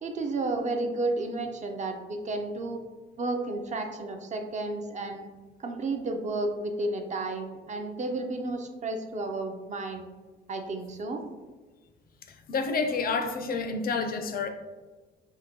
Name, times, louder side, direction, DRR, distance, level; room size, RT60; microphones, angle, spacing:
voice 1, 0.0-2.8 3.2-5.3 5.6-10.1 10.5-11.2, right 2 dB, 35° right, 5 dB, 0.4 m, -32 dB
voice 2, 12.5-14.5, left 4 dB, 50° left, 6 dB, 0.4 m, -29 dB
3.6 x 2.1 x 2.8 m, 1.3 s
cardioid pair, 90°, 20 cm